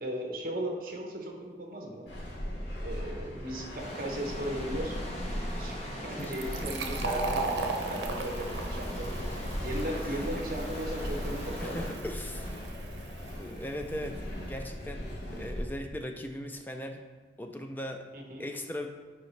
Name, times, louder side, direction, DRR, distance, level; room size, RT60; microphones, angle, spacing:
voice 1, 0.0-2.1 2.8-5.0 5.6-9.3 9.6-11.9 18.1-18.4, right 1 dB, 50° right, 1 dB, 1.0 m, -37 dB
sound 1, 2.1-15.7, equal, 75° left, 1.1 m, -38 dB
sound 2, 3.8-11.9, left 1 dB, 35° left, 1.2 m, -42 dB
Fill (with liquid), 6.2-13.6, right 3 dB, 85° right, 0.7 m, -38 dB
voice 2, 11.6-12.6 13.3-17.0 17.4-18.1 18.4-18.9, left 1 dB, 10° left, 4 dB, 0.4 m, -39 dB
7.7 x 4.8 x 3.2 m, 1.4 s
head